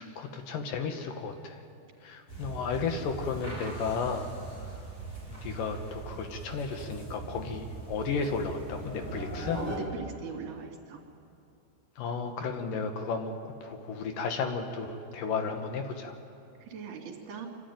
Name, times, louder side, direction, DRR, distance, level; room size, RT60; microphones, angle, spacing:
voice 1, 0.0-1.6 2.0-4.3 4.6-4.7 5.4-9.6 12.0-16.2, left 5 dB, 70° left, 5 dB, 2.7 m, -33 dB
sound 1, 2.3-9.8, right 2 dB, 35° left, 7.0 m, -40 dB
voice 2, 9.5-11.0 16.6-17.5, right 6 dB, 60° right, 0 dB, 3.9 m, -40 dB
27.5 x 13.0 x 9.4 m, 2.8 s
omnidirectional pair, 4.2 m